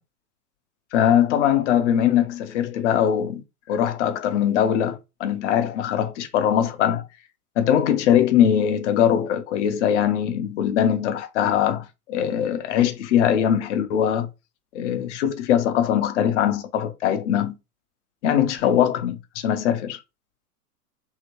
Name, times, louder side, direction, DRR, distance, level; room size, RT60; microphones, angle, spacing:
voice 1, 0.9-7.0 7.6-14.3 14.7-17.6 18.2-20.0, left 9 dB, 50° left, 0.6 m, -21 dB
2.8 x 2.8 x 2.8 m
figure-of-eight pair, 100°, 47 cm